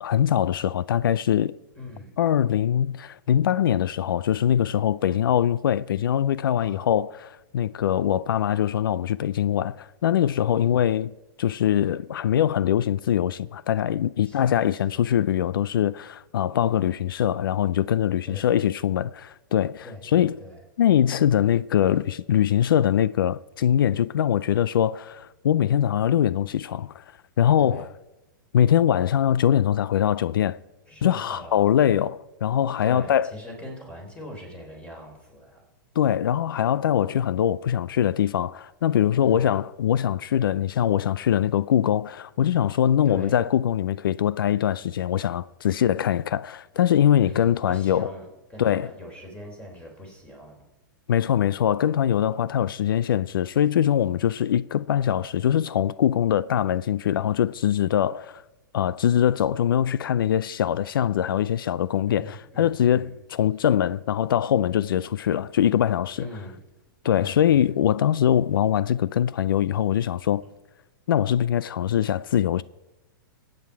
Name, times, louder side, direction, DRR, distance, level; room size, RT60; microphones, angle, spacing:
voice 1, 0.0-1.5 2.2-11.1 11.4-20.4 20.8-27.0 27.4-27.9 28.5-30.6 31.0-33.3 36.0-48.1 48.6-48.9 51.1-58.4 58.7-66.3 67.0-70.4 71.1-72.6, left 10 dB, 85° left, 0.4 m, -22 dB
voice 2, 1.7-2.1 5.1-5.3 6.6-6.9 10.6-10.9 14.2-15.0 18.2-18.5 19.8-20.6 27.6-27.9 30.9-31.8 32.8-35.6 39.2-39.6 43.0-43.4 47.2-50.6 62.1-63.2 66.2-66.6 67.2-67.6, left 1 dB, 10° left, 3.6 m, -42 dB
21.0 x 8.7 x 4.6 m
hypercardioid pair, 140°, 11 cm